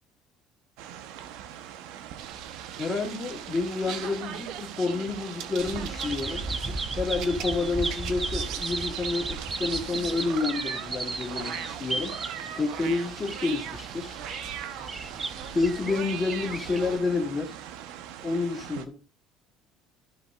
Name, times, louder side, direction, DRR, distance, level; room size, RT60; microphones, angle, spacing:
sound 1, 0.8-18.9, right 10 dB, 85° right, 1.0 m, -42 dB
sound 2, 2.1-17.0, right 9 dB, 60° right, 0.9 m, -40 dB
voice 1, 2.8-12.2 12.5-14.2 15.5-17.6 18.2-19.0, left 3 dB, 20° left, 2.1 m, -29 dB
Bird vocalization bird call bird song, 5.6-17.0, right 3 dB, 15° right, 0.5 m, -35 dB
14.0 x 5.2 x 2.5 m
cardioid pair, 170°, 0 cm